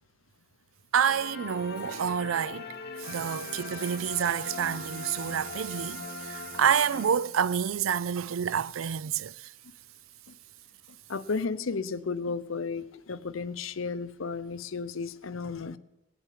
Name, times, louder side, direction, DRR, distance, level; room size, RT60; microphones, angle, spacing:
voice 1, 0.9-2.7 3.0-9.5, right 8 dB, 85° right, 0.4 m, -28 dB
sound 1, 1.0-7.6, left 4 dB, 55° left, 1.1 m, -41 dB
voice 2, 11.1-15.8, left 4 dB, 80° left, 0.7 m, -33 dB
19.5 x 8.0 x 7.4 m
head